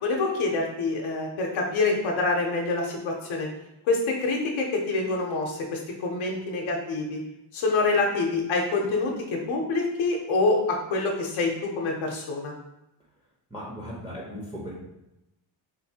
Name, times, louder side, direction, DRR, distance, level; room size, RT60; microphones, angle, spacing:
voice 1, 0.0-3.5 3.9-7.2 7.5-12.5, left 3 dB, 80° left, 0 dB, 0.7 m, -26 dB
voice 2, 13.5-14.8, equal, 10° right, -5 dB, 0.7 m, -37 dB
4.0 x 2.5 x 2.7 m, 0.90 s
cardioid pair, 110°, 47 cm